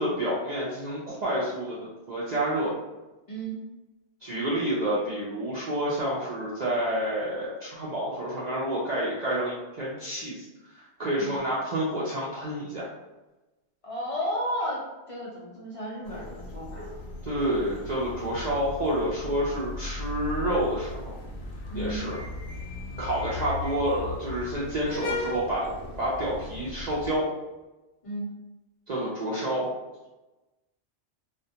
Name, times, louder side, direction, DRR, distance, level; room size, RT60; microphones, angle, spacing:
voice 1, 0.0-2.7 4.2-12.9 17.2-21.1 21.7-22.2 23.0-27.3 28.9-29.7, right 1 dB, 55° right, -7 dB, 0.5 m, -29 dB
voice 2, 3.3-3.6 11.2-11.4 13.8-16.9 21.7-22.0 28.0-28.3, equal, 45° left, -6 dB, 0.4 m, -33 dB
sound 1, 16.0-27.2, left 3 dB, 70° left, 0.8 m, -37 dB
2.2 x 2.1 x 2.6 m, 1.1 s
omnidirectional pair, 1.2 m